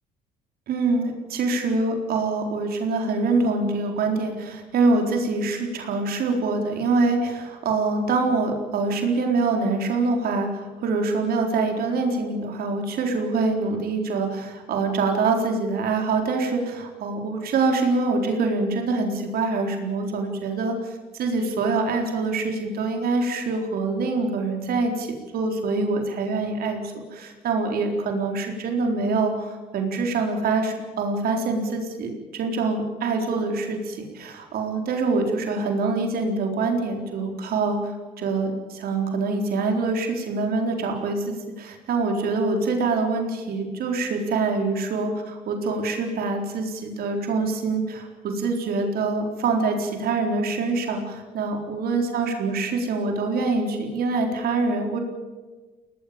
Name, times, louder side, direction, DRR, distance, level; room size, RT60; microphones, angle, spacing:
voice 1, 0.7-25.1 25.3-55.0, right 3 dB, 65° right, 3 dB, 4.1 m, -25 dB
21.5 x 19.0 x 8.7 m, 1.3 s
cardioid pair, 110°, 17 cm